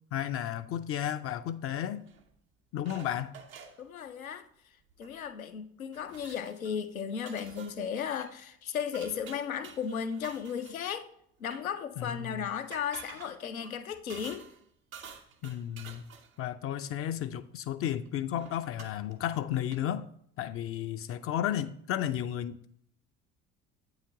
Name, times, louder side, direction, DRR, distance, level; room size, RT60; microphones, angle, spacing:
voice 1, 0.1-2.1 2.7-3.4 12.0-12.5 15.4-16.0 16.4-20.1 20.4-22.6, left 10 dB, 35° left, 0.4 m, -33 dB
sound 1, 2.1-2.3 2.8-3.8 4.9-5.2 5.5-5.6 5.9-6.7 7.2-7.8 8.2-8.4 8.9-10.8 11.4-11.7 12.6-14.6 14.9-16.4 18.0-18.1 18.4-19.2 19.7-19.8, right 7 dB, 80° right, 0.8 m, -50 dB
voice 2, 3.8-4.4 5.0-11.1 11.4-14.5, left 7 dB, 85° left, 0.6 m, -35 dB
8.5 x 4.8 x 3.6 m
figure-of-eight pair, 50°, 41 cm